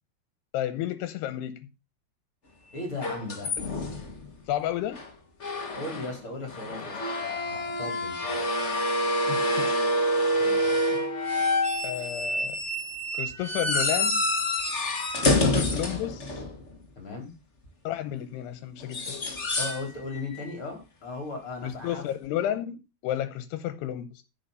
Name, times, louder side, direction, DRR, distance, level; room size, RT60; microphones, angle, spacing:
voice 1, 0.5-1.7 4.5-5.0 9.3-9.8 10.9-11.0 11.8-12.6 13.1-14.2 15.2-16.3 17.8-19.2 21.6-24.2, left 12 dB, 85° left, 2.9 m, -32 dB
voice 2, 2.7-3.5 5.5-8.4 10.4-10.8 17.0-17.3 19.6-22.0, left 3 dB, 35° left, 4.2 m, -37 dB
sound 1, 3.0-4.3 4.9-5.1 5.4-6.1 6.5-16.7 18.8-19.8 20.1-20.4 22.2-22.3, left 1 dB, 55° left, 0.7 m, -27 dB
10.0 x 6.0 x 6.8 m
omnidirectional pair, 4.8 m